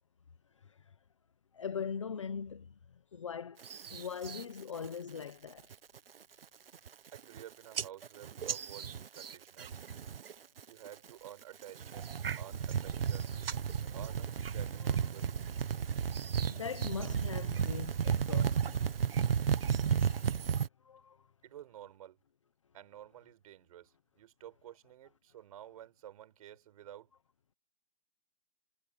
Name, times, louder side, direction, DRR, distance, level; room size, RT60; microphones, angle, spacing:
voice 1, 1.5-2.8 3.1-5.7 13.8-13.9 14.8-14.9 16.1-18.9 19.9-20.3 20.8-21.3, left 6 dB, 25° left, 1.0 m, -42 dB
sound 1, 3.6-4.4 4.8-5.2 5.6-6.0 6.4-6.5 6.7-7.4 7.7-10.3 10.6-11.1 11.6-20.7, right 7 dB, 45° right, 1.5 m, -33 dB
voice 2, 7.1-9.7 10.7-13.3 13.7-15.3 21.4-22.2 22.7-27.1, right 12 dB, 30° right, 5.4 m, -52 dB
hypercardioid pair, 180°, 38 cm